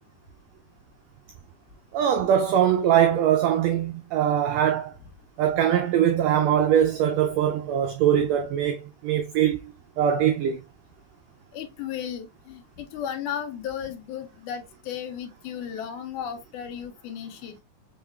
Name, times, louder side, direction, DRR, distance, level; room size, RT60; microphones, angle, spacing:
voice 1, 1.9-4.9 5.4-10.6, right 9 dB, 85° right, 1.5 m, -22 dB
voice 2, 11.5-17.6, left 9 dB, 85° left, 2.2 m, -35 dB
5.6 x 3.7 x 2.2 m
omnidirectional pair, 3.6 m